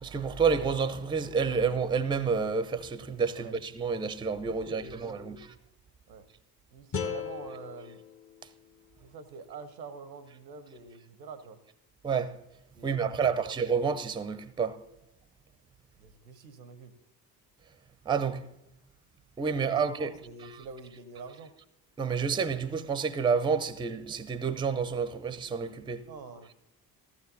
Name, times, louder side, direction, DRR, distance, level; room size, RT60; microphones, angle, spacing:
voice 1, 0.0-5.4 12.0-12.3 12.8-14.8 18.1-18.4 19.4-20.1 22.0-26.0, right 5 dB, 10° right, 0.5 m, -29 dB
voice 2, 4.5-5.5 6.1-6.3 6.7-8.0 9.0-11.6 12.8-13.6 16.0-16.9 19.5-21.5 26.1-26.5, right 4 dB, 85° right, 0.8 m, -46 dB
sound 1, 6.9-10.0, left 7 dB, 25° left, 0.8 m, -39 dB
14.5 x 14.5 x 2.7 m
figure-of-eight pair, 50°, 50 cm